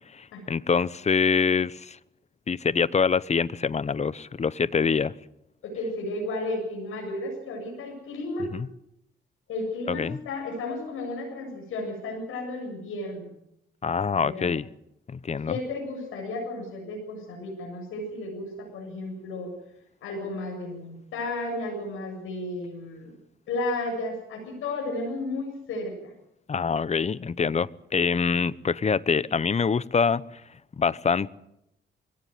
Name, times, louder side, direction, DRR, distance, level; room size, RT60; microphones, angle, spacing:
voice 1, 0.1-2.0 2.5-5.1 8.5-8.7 9.9-10.2 13.8-14.6 15.1-15.5 26.5-30.2 30.8-31.3, left 5 dB, 35° left, 0.9 m, -25 dB
voice 2, 5.6-8.5 9.5-13.3 14.2-14.5 15.5-19.5 20.0-23.2 23.5-26.1, left 2 dB, 85° left, 7.4 m, -33 dB
22.5 x 17.5 x 9.3 m
cardioid pair, 80°, 21 cm